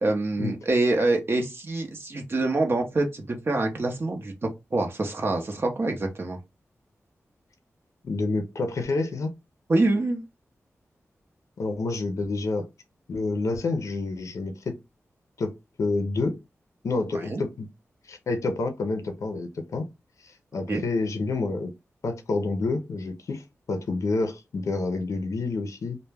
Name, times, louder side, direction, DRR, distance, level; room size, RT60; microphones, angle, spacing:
voice 1, 0.0-6.4 9.7-10.2 17.1-17.4 20.7-20.8, right 2 dB, 45° right, 0.6 m, -26 dB
voice 2, 8.0-9.3 11.6-12.7 13.1-14.8 15.4-15.5 15.8-16.4 16.8-17.7 18.1-19.9 20.2-21.7 22.0-26.0, left 3 dB, 75° left, 0.4 m, -28 dB
2.1 x 2.1 x 3.3 m
wide cardioid pair, 70°, 5 cm